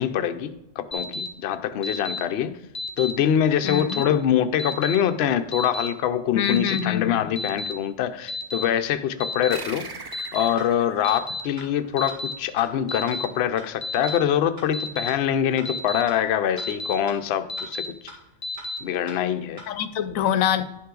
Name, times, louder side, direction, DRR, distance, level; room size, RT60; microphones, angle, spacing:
voice 1, 0.0-2.6 3.0-9.9 10.3-17.8 18.8-19.6, left 9 dB, 60° left, 9 dB, 0.7 m, -24 dB
Alarm, 0.9-1.3 1.8-2.2 2.7-3.1 3.7-4.0 4.6-4.9 5.5-5.9 6.4-6.8 7.4-7.7 8.3-8.6 9.2-9.6 10.1-10.5 11.0-11.4 12.0-12.3 12.9-13.2 13.8-14.2 14.7-15.1 15.6-16.0 16.6-16.9 17.5-17.9 18.4-18.8, left 2 dB, 20° left, 0.8 m, -31 dB
voice 2, 3.6-4.0 6.3-7.2 19.7-20.6, left 9 dB, 85° left, 12 dB, 1.0 m, -25 dB
sound 1, 9.5-12.5, right 3 dB, 35° right, 0.3 m, -41 dB
sound 2, 10.6-10.7 11.1-11.2 11.6-11.7 12.1-12.2 12.6-12.7 13.1-13.2 13.6-13.7 14.1-14.2 14.6-14.7 15.1-15.2 15.6-15.7 16.1-16.2 16.6-16.7 17.1-17.2 17.6-17.7 18.1-18.2 18.6-18.7 19.1-19.2 19.6-19.7, right 1 dB, 85° right, 2.7 m, -41 dB
10.5 x 5.7 x 3.8 m, 0.87 s
omnidirectional pair, 1.4 m